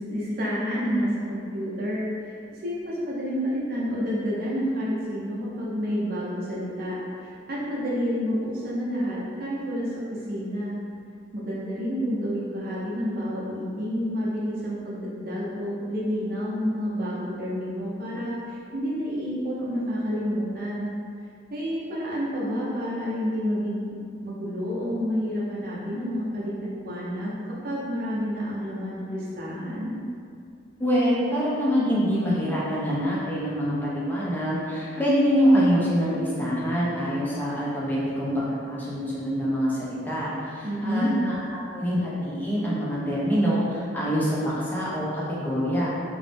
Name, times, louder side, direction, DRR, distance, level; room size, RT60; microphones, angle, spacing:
voice 1, 0.0-10.7 11.3-20.9 21.5-23.9 24.2-30.0 40.6-41.1, equal, 45° right, -7 dB, 0.6 m, -29 dB
voice 2, 30.8-45.9, equal, 10° left, -8 dB, 0.4 m, -25 dB
2.5 x 2.0 x 3.2 m, 2.4 s
head